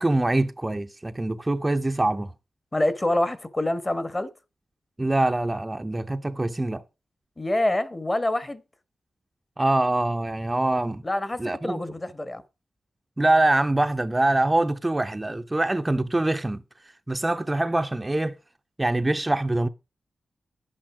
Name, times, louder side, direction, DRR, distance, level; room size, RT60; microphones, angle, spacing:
voice 1, 0.0-2.3 5.0-6.8 9.6-11.0 11.4-11.8 13.2-16.6 17.1-18.3 18.8-19.7, right 2 dB, 20° right, 0.7 m, -24 dB
voice 2, 2.7-4.3 7.4-8.6 11.0-12.4, left 1 dB, 20° left, 1.2 m, -26 dB
11.0 x 8.8 x 4.8 m
wide cardioid pair, 95°, 0 cm